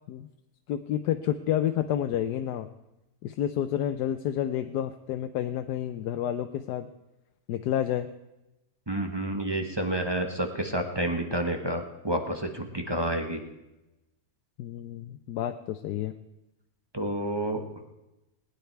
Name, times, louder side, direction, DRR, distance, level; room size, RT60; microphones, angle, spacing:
voice 1, 0.7-2.7 3.2-6.9 7.5-8.1 14.6-16.1, left 11 dB, 90° left, 8 dB, 1.2 m, -29 dB
voice 2, 8.9-13.4 16.9-17.6, right 1 dB, 20° right, 4 dB, 1.0 m, -29 dB
19.0 x 9.6 x 4.6 m, 0.97 s
omnidirectional pair, 1.7 m